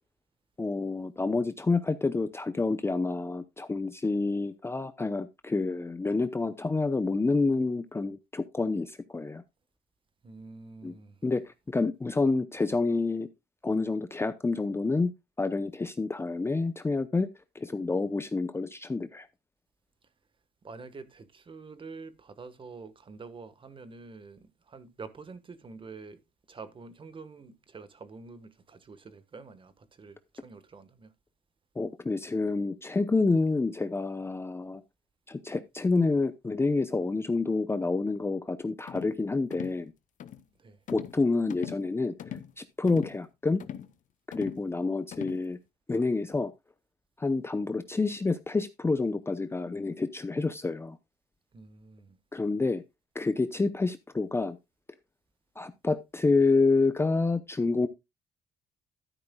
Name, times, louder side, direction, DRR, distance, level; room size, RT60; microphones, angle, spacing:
voice 1, 0.6-9.4 10.8-10.9 11.2-13.3 13.6-15.1 15.4-17.3 17.5-19.3 31.8-34.8 35.3-39.9 40.9-42.1 42.6-43.6 44.3-45.6 45.9-46.5 47.2-51.0 52.3-52.8 53.1-54.6 55.6-57.9, left 3 dB, 15° left, 0.7 m, -28 dB
voice 2, 10.2-11.2 20.6-26.2 26.5-31.1 40.6-40.8 51.5-52.2, right 4 dB, 30° right, 1.3 m, -47 dB
sound 1, 38.9-39.1 39.5-39.8 40.2-40.4 40.9-41.2 41.5-41.9 42.2-42.5 42.9-43.2 43.6-43.9 44.3-44.6 45.1-45.4, left 10 dB, 50° left, 0.8 m, -41 dB
12.0 x 10.0 x 2.3 m
cardioid pair, 110°, 17 cm